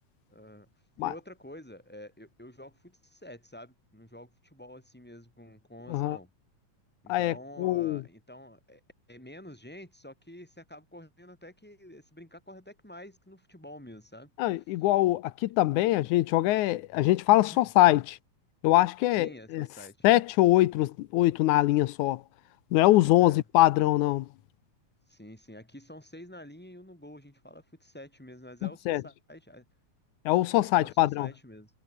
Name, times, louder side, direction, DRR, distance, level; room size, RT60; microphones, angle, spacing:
voice 1, 0.3-0.7 1.0-6.3 7.0-8.8 9.1-14.3 17.3-17.6 19.1-20.0 23.2-23.4 25.1-29.6 30.5-31.7, left 1 dB, 5° left, 7.1 m, -48 dB
voice 2, 7.1-8.0 14.4-18.2 18.6-19.7 20.0-22.2 22.7-24.3 28.9-29.0 30.3-31.3, left 16 dB, 85° left, 2.1 m, -23 dB
omnidirectional pair, 3.5 m